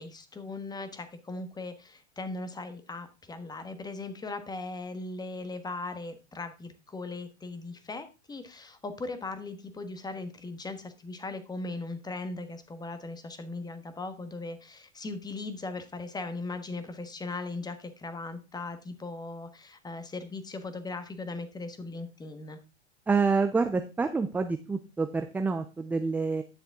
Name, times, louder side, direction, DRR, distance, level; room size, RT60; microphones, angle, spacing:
voice 1, 0.0-22.6, left 3 dB, 10° left, 10 dB, 1.3 m, -38 dB
voice 2, 23.1-26.4, right 4 dB, 5° right, 8 dB, 0.4 m, -27 dB
10.0 x 6.7 x 3.6 m, 0.29 s
hypercardioid pair, 110°, 35 cm